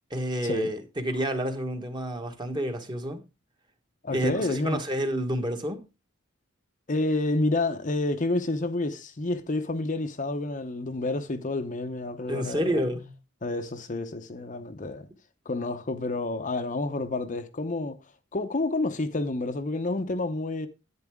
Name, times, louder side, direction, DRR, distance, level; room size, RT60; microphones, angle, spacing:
voice 1, 0.1-3.2 4.1-5.8 12.3-13.2, equal, 20° right, 1.3 m, -29 dB
voice 2, 4.0-4.8 6.9-12.8 13.4-15.1 15.5-18.0 18.3-20.7, left 2 dB, 40° left, 0.8 m, -29 dB
11.0 x 8.8 x 3.6 m
head